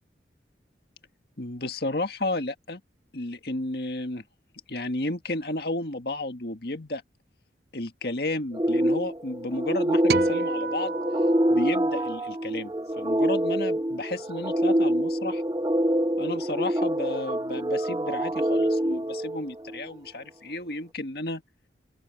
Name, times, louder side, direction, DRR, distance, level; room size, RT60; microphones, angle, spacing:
voice 1, 1.4-2.8 3.1-4.2 4.7-7.0 7.7-11.0 11.5-15.4 16.2-21.4, left 2 dB, 60° left, 1.9 m, -32 dB
sound 1, 8.5-19.9, equal, 20° right, 0.7 m, -26 dB
sound 2, 10.1-12.6, right 6 dB, 55° right, 0.4 m, -34 dB
open air
head